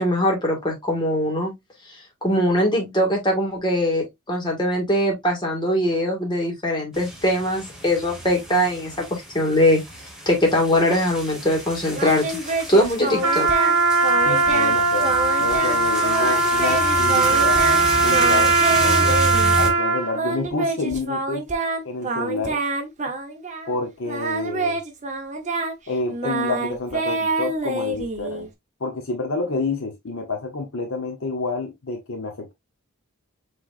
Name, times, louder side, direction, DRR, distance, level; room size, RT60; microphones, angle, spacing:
voice 1, 0.0-1.5 2.2-9.8 10.3-12.2 12.7-13.5, equal, 20° left, 2.0 m, -21 dB
sound 1, 6.9-19.7, right 1 dB, 5° right, 1.4 m, -31 dB
Singing, 11.9-13.8 14.0-14.7 15.0-17.8 18.1-19.5 20.1-23.7 24.1-28.5, right 3 dB, 35° right, 1.0 m, -27 dB
Trumpet, 13.2-20.2, right 3 dB, 75° right, 1.3 m, -19 dB
voice 2, 14.2-17.7 17.9-19.2 19.6-21.4 21.8-22.6 23.7-24.8 25.9-28.5 28.8-32.5, left 3 dB, 60° left, 1.0 m, -29 dB
6.0 x 3.3 x 2.5 m
head